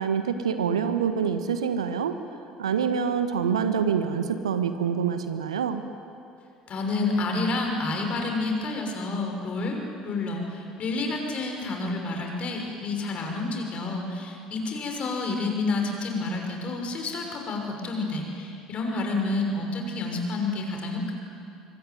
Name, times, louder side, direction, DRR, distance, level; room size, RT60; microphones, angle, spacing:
voice 1, 0.0-2.1 2.6-5.8, right 7 dB, 75° right, 9 dB, 1.4 m, -26 dB
voice 2, 6.7-9.8 10.0-21.1, left 3 dB, 40° left, 2 dB, 6.2 m, -29 dB
25.5 x 24.0 x 9.5 m, 2.6 s
figure-of-eight pair, 60°, 3 cm